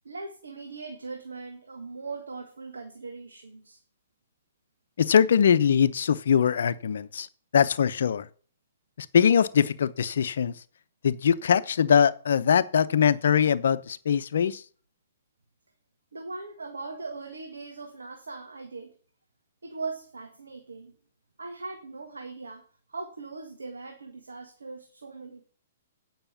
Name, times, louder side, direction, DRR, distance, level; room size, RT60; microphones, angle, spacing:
voice 1, 0.0-3.8 16.1-19.0 19.6-20.9 21.4-25.4, right 3 dB, 85° right, 1.7 m, -40 dB
voice 2, 5.0-7.3 7.5-8.3 9.0-10.6 11.0-14.6, left 7 dB, 70° left, 0.7 m, -22 dB
9.0 x 5.9 x 7.0 m
hypercardioid pair, 125°, 0 cm